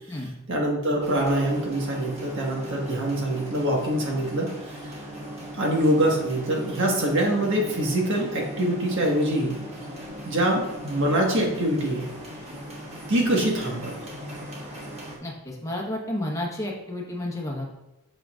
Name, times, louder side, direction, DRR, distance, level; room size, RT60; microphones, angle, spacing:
voice 1, 0.5-4.9 5.6-9.6 10.2-12.1 13.1-13.9, right 1 dB, 60° right, -1 dB, 1.6 m, -24 dB
sound 1, 1.0-15.2, equal, 30° right, 1.4 m, -39 dB
voice 2, 15.2-17.7, left 1 dB, 15° left, -2 dB, 1.3 m, -31 dB
7.9 x 6.3 x 2.5 m, 0.90 s
head